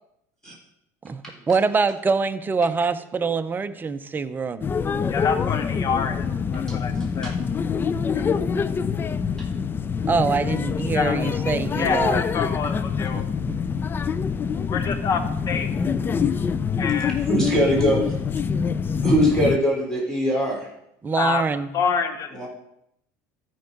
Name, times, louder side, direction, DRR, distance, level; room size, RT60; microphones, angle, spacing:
voice 1, 1.0-4.7 10.1-12.2 13.1-13.2 13.5-13.6 21.0-21.7, right 4 dB, 20° right, 11 dB, 0.7 m, -24 dB
sound 1, 4.6-19.6, left 6 dB, 25° left, 0.4 m, -25 dB
voice 2, 5.1-6.3 6.5-7.3 8.1-8.3 8.6-8.7 10.9-11.2 11.8-13.2 14.7-15.2 15.5-15.7 16.8-17.2 21.1-21.4 21.7-22.5, left 6 dB, 40° left, 9 dB, 1.2 m, -27 dB
voice 3, 17.3-18.2 19.0-20.7 22.3-22.5, equal, 5° left, -4 dB, 3.7 m, -22 dB
13.5 x 4.6 x 5.3 m, 0.77 s
supercardioid pair, 105°, 9 cm